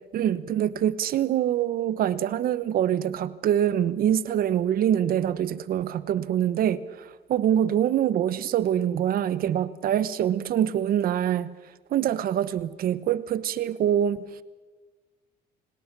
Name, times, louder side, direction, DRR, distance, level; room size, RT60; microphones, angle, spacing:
voice 1, 0.1-11.5 11.9-14.3, right 10 dB, 60° right, 16 dB, 1.0 m, -25 dB
27.0 x 19.0 x 6.1 m, 1.4 s
cardioid pair, 110°, 17 cm